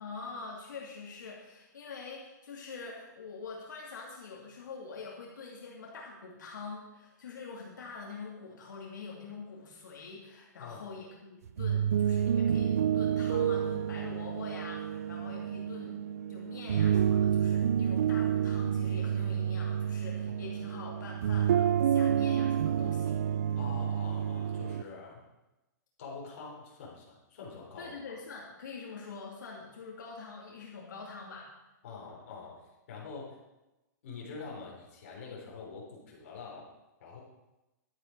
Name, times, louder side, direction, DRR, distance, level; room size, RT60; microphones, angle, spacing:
voice 1, 0.0-16.0 16.3-23.2 27.8-31.5, left 4 dB, 75° left, -3 dB, 2.6 m, -45 dB
voice 2, 10.6-10.9 20.3-20.4 23.6-25.2 26.0-28.1 31.8-32.6 32.9-33.4 34.0-36.7 37.0-37.2, left 4 dB, 40° left, -3 dB, 3.8 m, -45 dB
sound 1, 11.5-24.8, right 9 dB, 50° right, 0.3 m, -29 dB
11.5 x 9.2 x 4.7 m, 1.0 s
hypercardioid pair, 175°, 10 cm